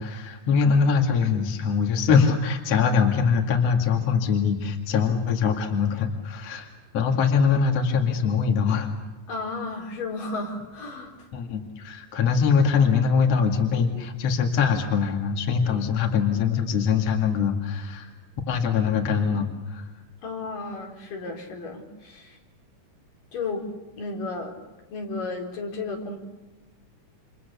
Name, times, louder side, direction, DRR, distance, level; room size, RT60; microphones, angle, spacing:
voice 1, 0.0-8.9 11.3-18.1 18.5-19.9, left 6 dB, 50° left, 3 dB, 3.2 m, -23 dB
voice 2, 9.3-11.1 20.2-22.4 23.3-23.7 24.0-24.6 24.9-26.2, left 3 dB, 85° left, 1 dB, 5.9 m, -33 dB
30.0 x 28.0 x 7.0 m, 1.1 s
omnidirectional pair, 3.7 m